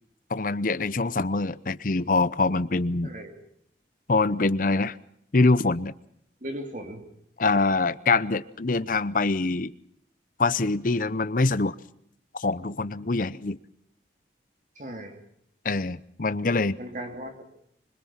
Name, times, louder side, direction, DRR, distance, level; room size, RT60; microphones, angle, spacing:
voice 1, 0.3-3.1 4.1-5.0 5.3-5.9 7.4-9.7 10.4-11.8 12.4-13.6 15.6-16.8, left 3 dB, 45° left, 15 dB, 0.8 m, -24 dB
voice 2, 6.4-7.0 14.8-15.2 16.8-17.4, right 1 dB, 45° right, 5 dB, 3.1 m, -37 dB
25.5 x 21.5 x 5.8 m, 0.71 s
head